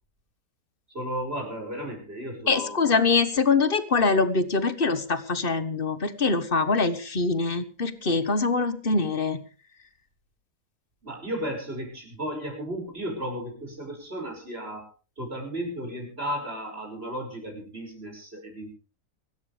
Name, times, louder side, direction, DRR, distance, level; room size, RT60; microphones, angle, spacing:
voice 1, 0.9-3.0 11.0-14.9 15.2-18.8, equal, 40° right, 3 dB, 6.4 m, -34 dB
voice 2, 2.5-9.4, left 4 dB, 35° left, 12 dB, 1.5 m, -24 dB
25.5 x 13.5 x 3.4 m, 0.36 s
omnidirectional pair, 1.6 m